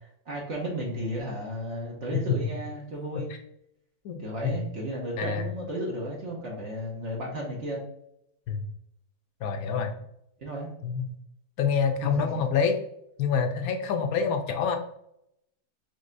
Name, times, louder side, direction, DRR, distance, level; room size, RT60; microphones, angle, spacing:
voice 1, 0.2-3.3 4.2-7.8 9.7-9.9 10.4-10.7 12.0-12.3, right 1 dB, 55° right, -3 dB, 1.1 m, -34 dB
voice 2, 9.4-9.9 10.8-11.2 11.6-12.8 13.2-14.8, left 6 dB, 70° left, 6 dB, 1.0 m, -26 dB
5.2 x 3.4 x 2.6 m, 0.76 s
omnidirectional pair, 1.6 m